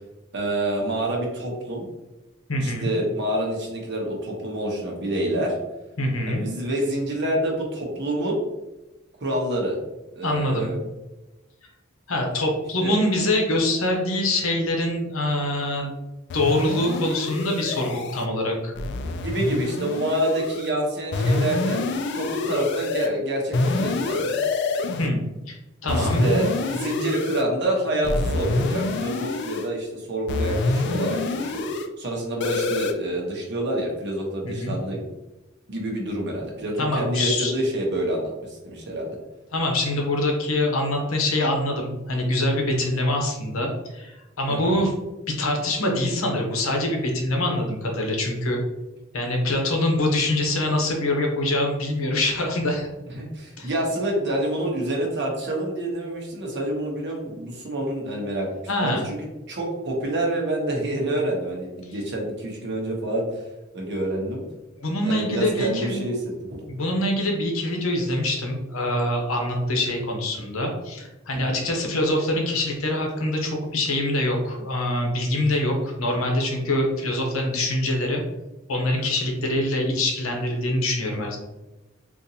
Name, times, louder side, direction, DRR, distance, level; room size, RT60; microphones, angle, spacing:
voice 1, 0.3-1.9 2.6-5.5 6.3-8.4 9.2-9.8 10.2-10.8 12.8-12.9 19.1-21.8 22.2-24.4 25.9-31.6 32.0-35.0 35.7-39.2 44.5-44.7 53.1-58.5 58.8-63.4 63.7-64.4 65.0-66.2 66.5-66.6 71.3-71.6, right 1 dB, 60° right, -1 dB, 0.9 m, -27 dB
voice 2, 2.5-2.9 6.0-6.4 10.2-10.7 12.1-15.9 16.3-18.7 25.0-25.2 25.5-25.6 25.8-26.3 34.4-34.7 36.8-37.5 39.5-44.9 45.3-48.6 49.1-52.9 53.6-53.7 58.7-59.0 64.8-66.0 66.7-78.2 78.7-81.4, left 1 dB, 85° left, 1 dB, 0.8 m, -24 dB
sound 1, 16.3-18.3 18.8-20.7 21.1-23.1 23.5-25.1 25.9-27.4 28.0-29.7 30.3-31.9 32.4-32.9, left 3 dB, 55° left, 0.3 m, -26 dB
3.8 x 2.5 x 2.8 m, 1.0 s
head